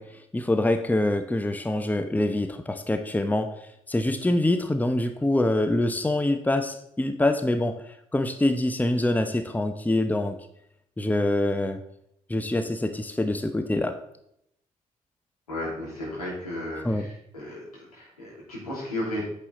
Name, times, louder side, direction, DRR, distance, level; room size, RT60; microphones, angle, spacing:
voice 1, 0.0-10.4 11.0-11.8 12.3-14.0 16.8-17.1, left 1 dB, 10° left, 9 dB, 0.9 m, -25 dB
voice 2, 15.5-19.2, left 1 dB, 85° left, -7 dB, 2.9 m, -34 dB
8.7 x 7.6 x 3.9 m, 0.75 s
figure-of-eight pair, 40°, 18 cm